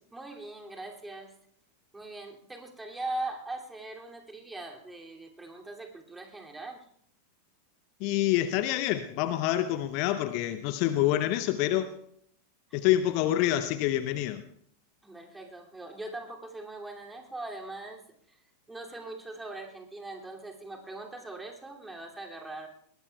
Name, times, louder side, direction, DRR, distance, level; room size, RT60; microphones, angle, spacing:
voice 1, 0.1-1.3 1.9-6.9 12.7-12.8 15.0-18.0 18.3-18.4 18.7-22.7, right 2 dB, 10° right, 1 dB, 2.7 m, -41 dB
voice 2, 8.0-12.0 12.7-14.4, left 13 dB, 45° left, 12 dB, 0.8 m, -27 dB
21.5 x 19.0 x 2.3 m, 0.69 s
figure-of-eight pair, 90°, 0 cm